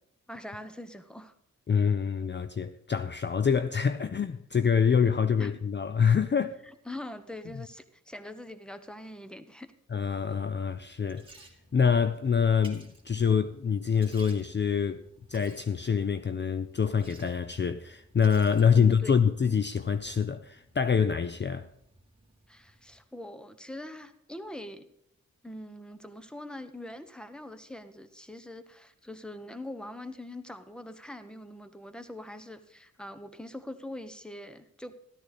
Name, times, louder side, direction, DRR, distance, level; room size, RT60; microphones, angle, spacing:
voice 1, 0.3-1.3 5.4-5.5 6.6-9.7 18.7-19.1 22.5-24.9 25.4-35.0, left 1 dB, 5° left, 1.0 m, -43 dB
voice 2, 1.7-6.5 9.9-11.3 11.7-15.0 15.3-21.7, left 6 dB, 40° left, 0.5 m, -26 dB
Liquid, 10.7-23.0, right 2 dB, 15° right, 2.4 m, -57 dB
13.5 x 12.5 x 4.2 m
wide cardioid pair, 95°, 30 cm